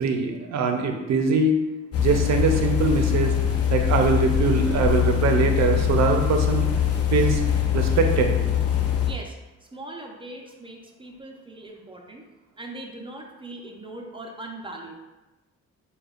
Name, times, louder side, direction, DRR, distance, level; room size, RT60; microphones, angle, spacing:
voice 1, 0.0-1.6 2.0-3.3 3.7-6.7 7.1-7.4 7.7-8.4, right 4 dB, 65° right, 4 dB, 0.6 m, -22 dB
sound 1, 1.9-9.1, left 9 dB, 55° left, 0.6 m, -23 dB
voice 2, 9.0-9.4 9.7-12.3 12.6-14.9, right 2 dB, 15° right, 1 dB, 0.6 m, -40 dB
6.6 x 2.3 x 2.4 m, 1.1 s
cardioid pair, 90°, 30 cm